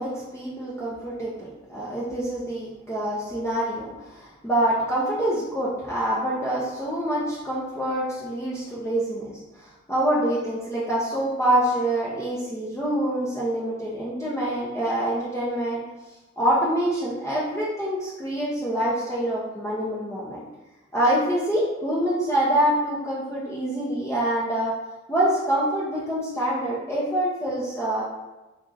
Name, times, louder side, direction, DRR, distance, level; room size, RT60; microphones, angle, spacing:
voice 1, 0.0-20.4 20.9-24.7 25.1-28.0, right 1 dB, 10° left, -8 dB, 0.8 m, -26 dB
2.9 x 2.6 x 3.8 m, 1.1 s
cardioid pair, 60°, 29 cm